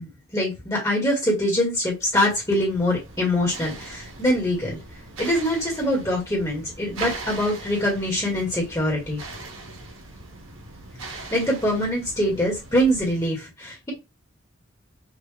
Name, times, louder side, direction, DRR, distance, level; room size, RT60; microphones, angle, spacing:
voice 1, 0.0-4.8 5.2-9.2 11.3-13.9, equal, 20° left, -2 dB, 1.4 m, -24 dB
sound 1, 1.8-13.3, right 2 dB, 85° right, 1.3 m, -40 dB
5.5 x 2.4 x 3.2 m, 0.24 s
head